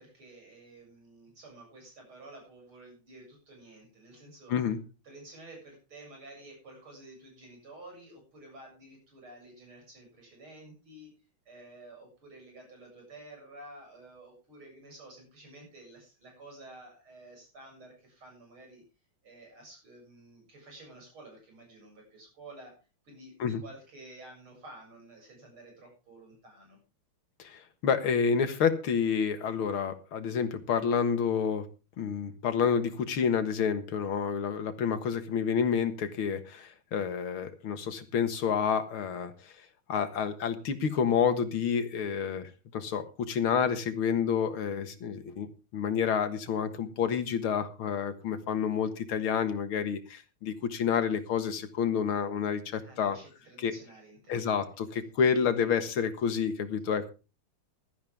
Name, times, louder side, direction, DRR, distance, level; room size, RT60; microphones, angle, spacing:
voice 1, 0.0-4.5 5.0-11.1 11.5-18.8 19.2-22.8 23.0-26.8 52.8-54.5 54.8-55.0 55.3-55.9, right 2 dB, 90° right, 1 dB, 8.1 m, -51 dB
voice 2, 4.5-4.8 23.4-23.6 27.4-31.7 32.0-39.5 39.9-53.2 53.6-53.7 54.3-57.1, left 7 dB, 90° left, 9 dB, 2.4 m, -29 dB
16.0 x 13.0 x 3.5 m, 0.32 s
omnidirectional pair, 2.3 m